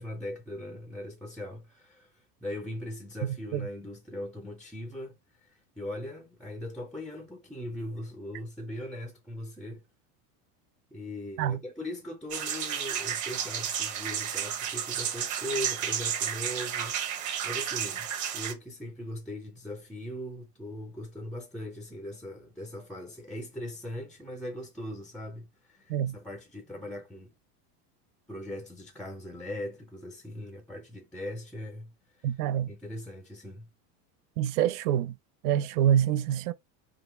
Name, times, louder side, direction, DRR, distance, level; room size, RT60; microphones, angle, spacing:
voice 1, 0.0-5.1 5.4-9.8 10.9-17.0 17.4-27.3 28.3-31.9 32.2-33.7, left 1 dB, ahead, 0.4 m, -40 dB
sound 1, 12.3-18.5, right 9 dB, 40° right, 1.0 m, -32 dB
voice 2, 32.2-32.7 34.4-35.1 35.4-36.5, right 10 dB, 75° right, 0.6 m, -26 dB
3.8 x 2.3 x 4.0 m
supercardioid pair, 120°, 47 cm